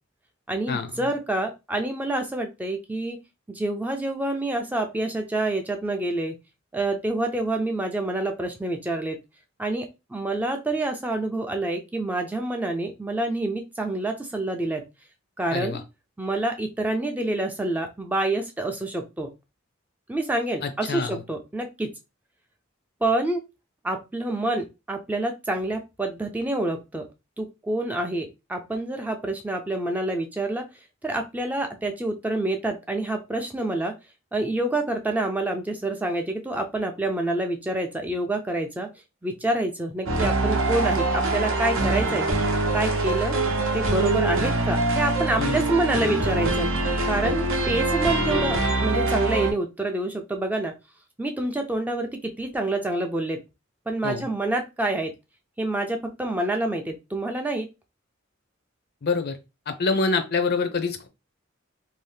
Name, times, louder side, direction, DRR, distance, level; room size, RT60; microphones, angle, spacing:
voice 1, 0.5-3.2 3.5-6.4 6.7-9.2 9.6-14.8 15.4-15.8 16.2-19.3 20.1-21.9 23.0-23.4 23.8-27.1 27.4-30.6 31.0-33.9 34.3-38.9 39.2-42.3 42.7-43.4 43.7-46.7 47.1-50.7 51.2-53.4 53.9-55.1 55.6-57.7, right 2 dB, 10° right, 4 dB, 0.3 m, -27 dB
voice 2, 15.5-15.8 20.6-21.2 45.4-45.6 54.0-54.3 59.0-59.4 59.7-61.1, left 4 dB, 55° left, 9 dB, 0.5 m, -26 dB
sound 1, 40.1-49.5, right 2 dB, 80° right, 0.7 m, -24 dB
2.7 x 2.0 x 3.2 m, 0.26 s
head